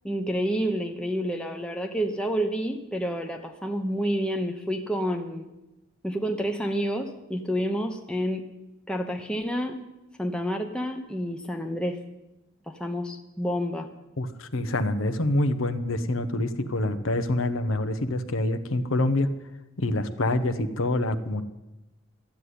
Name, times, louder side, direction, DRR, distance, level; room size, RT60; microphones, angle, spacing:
voice 1, 0.0-5.5 6.0-8.4 8.9-9.8 10.2-12.0 12.7-13.9, equal, 5° left, 3 dB, 0.8 m, -29 dB
voice 2, 14.2-19.3 19.8-21.4, left 2 dB, 70° left, 11 dB, 1.0 m, -26 dB
13.0 x 8.4 x 9.4 m, 0.99 s
head